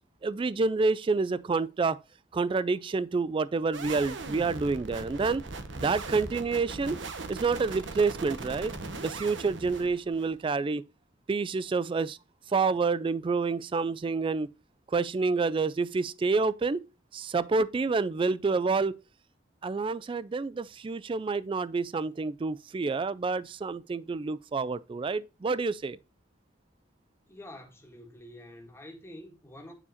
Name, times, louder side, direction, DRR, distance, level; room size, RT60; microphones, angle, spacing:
voice 1, 0.2-2.0 2.3-5.4 5.8-7.0 7.3-8.7 9.0-10.8 11.3-12.2 12.5-14.5 14.9-16.8 17.1-19.0 19.6-26.0, right 4 dB, 25° right, 0.3 m, -28 dB
sound 1, 3.7-10.4, right 3 dB, 70° right, 0.9 m, -39 dB
voice 2, 27.3-29.7, left 1 dB, 15° left, 1.8 m, -47 dB
9.7 x 4.8 x 2.8 m
head